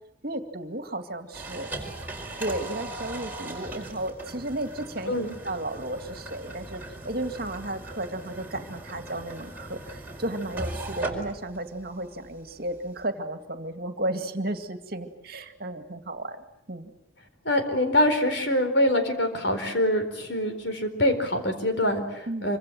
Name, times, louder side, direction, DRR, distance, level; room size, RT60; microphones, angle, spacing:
voice 1, 0.2-1.7 2.4-5.2 5.4-16.9 22.3-22.5, right 1 dB, 50° right, 7 dB, 2.3 m, -33 dB
sound 1, 1.3-13.0, right 2 dB, 10° right, 4.7 m, -39 dB
voice 2, 17.4-22.6, left 1 dB, 60° left, 7 dB, 4.4 m, -24 dB
26.5 x 25.0 x 7.7 m, 0.80 s
head